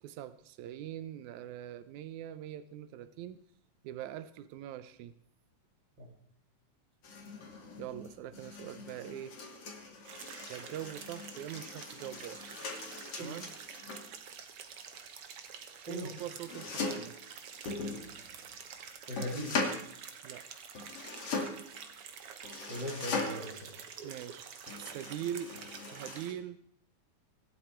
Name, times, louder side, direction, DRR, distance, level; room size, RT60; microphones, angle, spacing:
voice 1, 0.0-3.4 3.8-5.1 7.8-9.4 10.5-12.5 13.2-13.5 15.9-17.2 20.2-20.5 24.0-24.5 24.8-25.6 25.9-26.6, right 11 dB, 85° right, 12 dB, 2.2 m, -42 dB
sound 1, 7.0-14.1 16.2-17.2 17.6-18.6 19.2-19.9 20.7-21.7 22.4-23.6 24.7-26.3, left 3 dB, 55° left, 3.3 m, -40 dB
sound 2, 10.0-26.3, right 7 dB, 55° right, 2.1 m, -48 dB
voice 2, 19.1-19.7 22.7-23.7, equal, 40° right, -4 dB, 3.3 m, -39 dB
24.5 x 12.5 x 4.5 m, 0.64 s
omnidirectional pair, 3.3 m